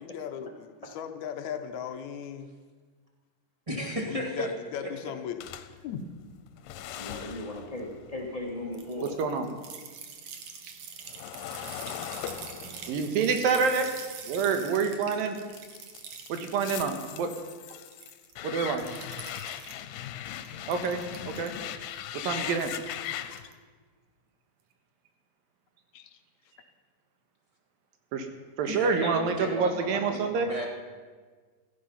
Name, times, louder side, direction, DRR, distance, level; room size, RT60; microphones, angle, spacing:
voice 1, 0.0-2.5 4.1-5.5 5.8-6.0 25.9-26.2, left 8 dB, 70° left, 7 dB, 1.9 m, -37 dB
voice 2, 3.7-4.5 28.6-30.7, equal, 15° right, -2 dB, 1.6 m, -34 dB
sound 1, 5.4-9.7 10.0-14.9 15.5-23.5, left 11 dB, 85° left, 2.4 m, -40 dB
voice 3, 7.0-9.4 20.3-20.4, left 1 dB, 30° left, -1 dB, 0.7 m, -37 dB
sound 2, 8.7-17.4 17.7-18.4 18.7-19.8 20.3-21.5 22.6-23.1 23.4-23.5, right 6 dB, 55° right, 2.0 m, -44 dB
voice 4, 12.9-13.9 14.3-15.4 16.3-17.3 18.4-18.8 20.7-21.0 21.3-21.5 22.2-22.7 28.1-28.3 28.6-30.5, right 5 dB, 85° right, 6 dB, 3.2 m, -27 dB
16.0 x 14.5 x 5.7 m, 1.5 s
omnidirectional pair, 4.0 m